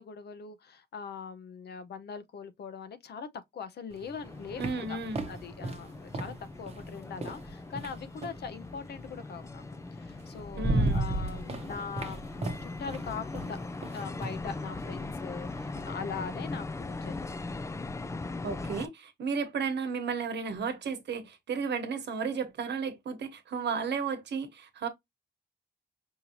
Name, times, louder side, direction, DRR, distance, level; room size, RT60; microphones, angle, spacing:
voice 1, 0.0-3.3 3.5-5.0 5.3-9.6 9.9-12.2 12.6-13.6 13.9-17.4, left 6 dB, 65° left, 0.7 m, -41 dB
sound 1, 3.9-8.5 9.7-9.8 10.2-15.9, right 2 dB, 35° right, 0.9 m, -35 dB
sound 2, 4.2-18.9, left 3 dB, 15° left, 0.3 m, -40 dB
voice 2, 4.6-5.3 10.6-11.1 18.4-24.9, right 5 dB, 70° right, 1.1 m, -33 dB
5.5 x 2.6 x 2.9 m
wide cardioid pair, 160°, 18 cm